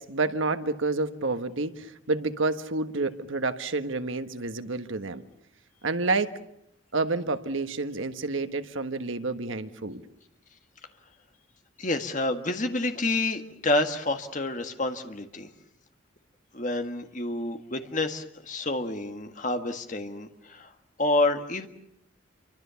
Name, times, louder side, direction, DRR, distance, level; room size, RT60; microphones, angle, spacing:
voice 1, 0.0-5.2 5.8-6.4 6.9-10.0, right 3 dB, 80° right, 1.4 m, -29 dB
voice 2, 11.8-15.5 16.5-20.7 21.0-21.7, left 2 dB, 40° left, 1.8 m, -28 dB
28.0 x 24.5 x 7.1 m
head